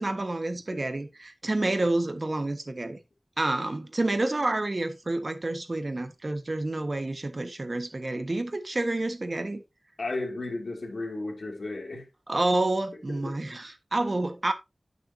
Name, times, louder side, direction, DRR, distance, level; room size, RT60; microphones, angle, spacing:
voice 1, 0.0-3.0 3.4-9.6 12.3-14.5, right 2 dB, 50° right, 1.2 m, -29 dB
voice 2, 10.0-12.1 13.1-13.4, left 2 dB, 90° left, 2.2 m, -34 dB
9.8 x 6.6 x 2.7 m
wide cardioid pair, 70°, 0 cm